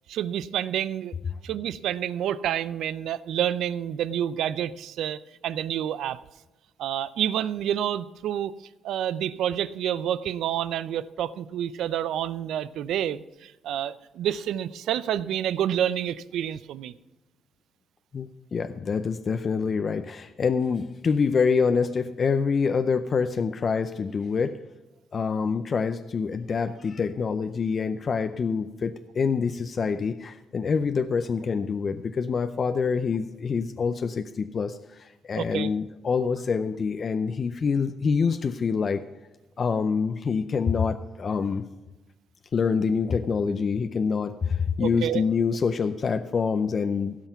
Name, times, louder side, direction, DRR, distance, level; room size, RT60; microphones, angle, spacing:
voice 1, 0.1-1.1 1.4-6.2 6.8-8.5 8.8-16.9 35.4-35.7 44.8-45.2, right 10 dB, 80° right, 16 dB, 0.5 m, -28 dB
voice 2, 18.1-24.6 25.1-39.0 39.6-41.7 42.5-47.2, left 5 dB, 45° left, 9 dB, 0.5 m, -26 dB
16.0 x 5.7 x 5.8 m, 1.1 s
cardioid pair, 90°, 0 cm